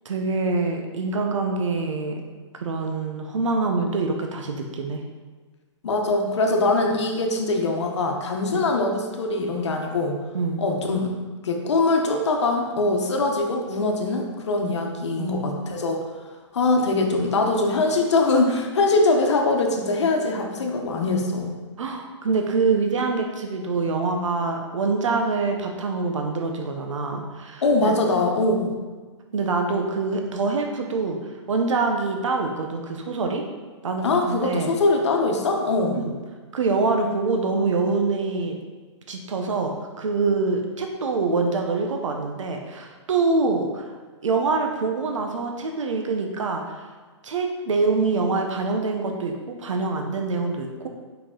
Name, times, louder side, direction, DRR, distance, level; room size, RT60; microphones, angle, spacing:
voice 1, 0.0-2.2 2.5-5.0 8.5-8.6 10.3-10.6 14.6-14.8 15.1-15.5 21.8-27.9 29.3-33.4 33.8-34.7 35.9-36.1 36.5-38.6 39.1-43.9 44.2-46.9 47.2-50.9, right 3 dB, 90° right, 3 dB, 0.8 m, -25 dB
voice 2, 5.8-10.2 10.6-11.1 11.4-16.0 16.5-21.5 27.6-28.7 34.0-36.0, left 2 dB, 65° left, 2 dB, 1.0 m, -22 dB
5.4 x 4.9 x 3.7 m, 1.4 s
hypercardioid pair, 175°, 16 cm